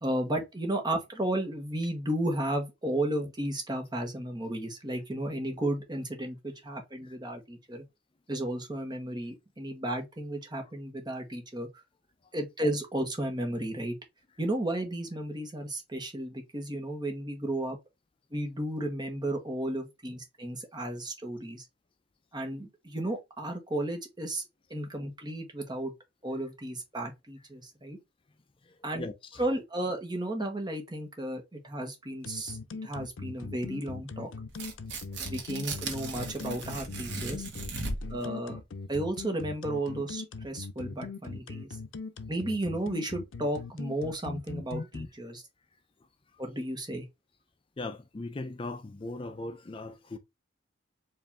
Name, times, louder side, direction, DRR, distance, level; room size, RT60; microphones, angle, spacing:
voice 1, 0.0-7.8 8.3-11.8 12.3-14.0 14.4-17.8 18.3-21.7 22.3-24.4 24.7-25.9 26.2-28.0 28.8-29.1 29.4-34.3 35.2-37.5 38.1-38.6 38.9-41.7 42.3-45.4 46.4-47.1, right 1 dB, 20° right, 1.1 m, -33 dB
voice 2, 28.7-29.4 47.8-50.2, left 2 dB, 25° left, 0.4 m, -39 dB
sound 1, 32.2-45.1, left 4 dB, 80° left, 0.5 m, -40 dB
Tearing, 34.5-38.2, right 3 dB, 70° right, 1.3 m, -37 dB
4.9 x 2.6 x 3.3 m
head